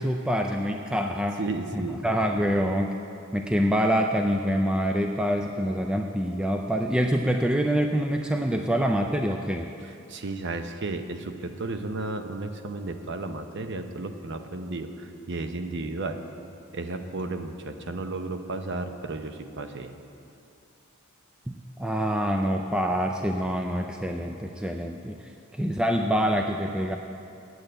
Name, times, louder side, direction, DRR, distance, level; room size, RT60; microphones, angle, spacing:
voice 1, 0.0-1.4 1.7-2.9 3.3-9.7 21.5-25.2 25.5-27.0, equal, 5° right, 3 dB, 0.3 m, -26 dB
voice 2, 1.4-2.0 9.8-16.2 16.7-19.9, right 2 dB, 55° right, 7 dB, 0.7 m, -33 dB
8.8 x 7.9 x 8.8 m, 2.7 s
head